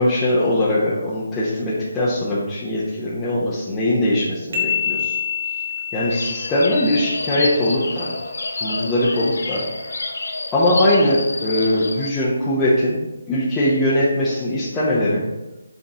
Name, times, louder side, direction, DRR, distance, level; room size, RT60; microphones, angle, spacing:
voice 1, 0.0-5.2 5.9-8.1 8.6-9.6 9.9-10.0 10.5-13.0 13.3-15.2, left 1 dB, 10° left, -9 dB, 1.1 m, -20 dB
sound 1, 4.5-8.1, left 7 dB, 55° right, 1.6 m, -27 dB
sound 2, 6.1-12.1, left 2 dB, 75° left, 0.8 m, -29 dB
7.1 x 4.2 x 4.0 m, 1.0 s
figure-of-eight pair, 150°, 0 cm